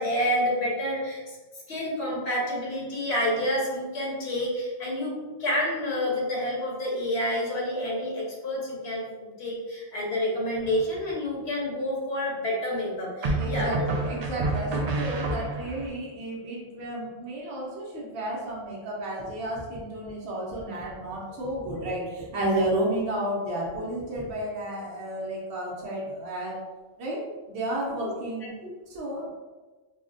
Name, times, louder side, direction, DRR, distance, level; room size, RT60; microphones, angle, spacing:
voice 1, 0.0-1.4 1.7-13.7 27.8-28.0 28.4-28.7, left 1 dB, 85° left, -4 dB, 1.3 m, -29 dB
sound 1, 10.6-11.1 13.2-15.9, right 2 dB, 55° right, 0.4 m, -29 dB
voice 2, 13.3-26.6 27.0-28.5 28.9-29.3, right 1 dB, 80° right, -5 dB, 1.0 m, -32 dB
4.6 x 2.1 x 2.5 m, 1.2 s
omnidirectional pair, 1.1 m